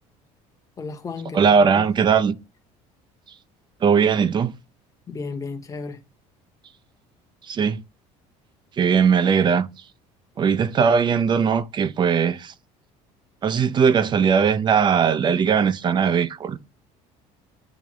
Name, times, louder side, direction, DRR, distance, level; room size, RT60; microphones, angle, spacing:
voice 1, 0.8-1.8 5.1-6.0, left 4 dB, 25° left, 1.1 m, -34 dB
voice 2, 1.3-2.4 3.8-4.5 7.5-7.8 8.8-9.7 10.4-12.5 13.4-16.6, right 6 dB, 30° right, 0.5 m, -19 dB
8.9 x 3.4 x 3.1 m
cardioid pair, 125°, 14 cm